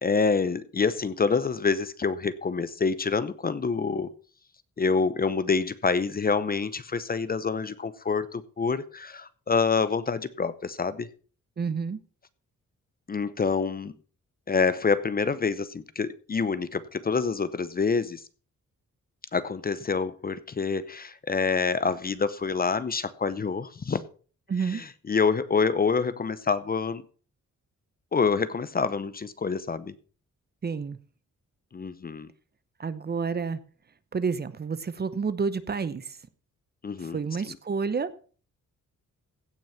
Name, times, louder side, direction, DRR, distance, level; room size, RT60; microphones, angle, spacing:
voice 1, 0.0-4.1 4.8-11.1 13.1-13.9 14.5-18.2 19.3-24.0 24.6-27.0 28.1-29.9 31.7-32.3 36.8-37.2 37.5-37.6, left 5 dB, 30° left, 15 dB, 0.7 m, -27 dB
voice 2, 11.6-12.0 24.5-24.8 30.6-31.0 32.8-33.6 34.1-36.1 37.0-38.1, right 5 dB, 30° right, 15 dB, 0.8 m, -29 dB
16.0 x 6.2 x 5.7 m, 0.40 s
wide cardioid pair, 155°, 30 cm